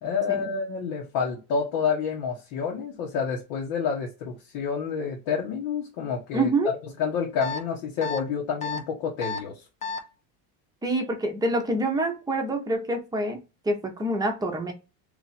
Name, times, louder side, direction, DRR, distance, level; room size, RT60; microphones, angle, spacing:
voice 1, 0.0-6.5 7.0-9.6, left 6 dB, 70° left, -1 dB, 1.1 m, -29 dB
voice 2, 6.3-6.7 10.8-13.4 13.6-14.7, right 2 dB, 10° right, 2 dB, 0.7 m, -26 dB
sound 1, 7.4-7.6 8.0-8.2 8.6-8.8 9.2-9.4 9.8-10.0, left 4 dB, 20° left, 0.3 m, -31 dB
3.0 x 2.5 x 4.0 m, 0.29 s
cardioid pair, 135°, 43 cm